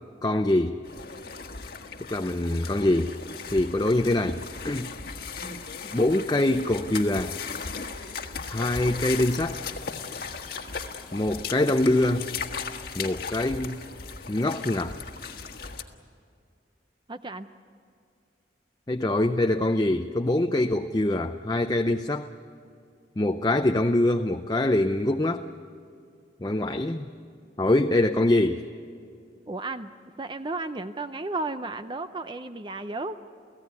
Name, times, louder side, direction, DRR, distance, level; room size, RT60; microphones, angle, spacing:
voice 1, 0.2-0.8 2.1-3.2 3.5-4.9 5.9-7.4 8.5-9.6 11.1-12.3 13.0-13.8 14.3-15.0 18.9-22.3 23.2-25.5 26.4-27.1 27.6-28.6, left 1 dB, 20° left, 6 dB, 0.6 m, -24 dB
sound 1, 0.8-15.8, left 5 dB, 60° left, 1.5 m, -37 dB
voice 2, 17.1-17.5 29.5-29.9 30.2-33.2, right 2 dB, 25° right, 10 dB, 0.6 m, -34 dB
29.5 x 16.5 x 9.6 m, 2.3 s
head